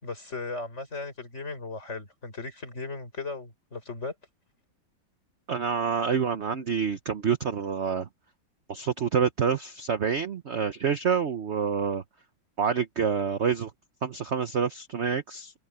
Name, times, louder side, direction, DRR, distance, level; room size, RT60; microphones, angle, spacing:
voice 1, 0.0-4.1, left 3 dB, 35° left, 5.0 m, -37 dB
voice 2, 5.5-8.1 8.7-12.0 12.6-13.7 14.0-15.5, right 6 dB, 50° right, 0.9 m, -27 dB
omnidirectional pair, 2.2 m